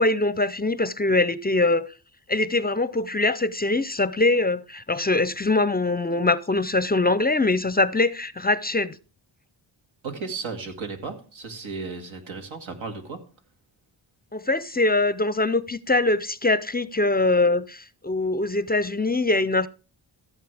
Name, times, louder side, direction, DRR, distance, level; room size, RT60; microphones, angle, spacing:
voice 1, 0.0-1.9 2.3-9.0 14.3-19.7, left 2 dB, 20° left, 0.4 m, -23 dB
voice 2, 10.0-13.2, right 4 dB, 90° right, 2.2 m, -34 dB
15.0 x 7.5 x 3.4 m
cardioid pair, 75°, 46 cm